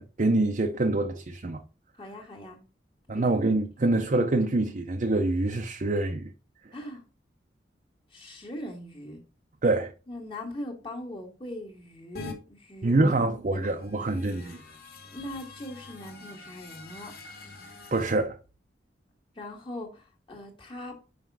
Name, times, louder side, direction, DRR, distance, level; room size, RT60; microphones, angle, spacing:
voice 1, 0.0-1.6 3.1-6.3 9.6-9.9 12.8-14.6 17.9-18.4, right 2 dB, 45° right, 0.6 m, -25 dB
voice 2, 2.0-2.6 3.1-3.3 6.7-7.0 8.1-9.2 10.1-13.0 13.5-13.7 15.0-17.1 19.4-21.0, left 1 dB, 30° left, 1.7 m, -40 dB
sound 1, 12.1-12.3 13.7-18.1, left 3 dB, 55° left, 1.8 m, -45 dB
5.7 x 5.1 x 4.6 m
head